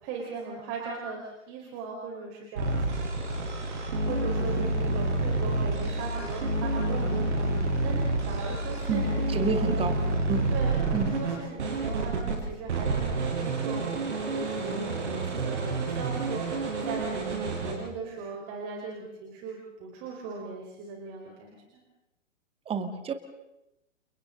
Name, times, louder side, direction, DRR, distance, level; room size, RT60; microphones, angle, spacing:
voice 1, 0.0-3.1 4.0-9.3 9.6-10.1 10.5-21.8, right 4 dB, 35° right, -1 dB, 4.7 m, -39 dB
sound 1, 2.6-12.4 12.7-17.7, right 2 dB, 60° right, 7.0 m, -29 dB
voice 2, 8.9-10.0 10.3-10.5 10.9-11.1 22.7-23.1, right 5 dB, 15° right, 8 dB, 2.0 m, -29 dB
30.0 x 29.5 x 4.0 m, 0.91 s
figure-of-eight pair, 120°, 39 cm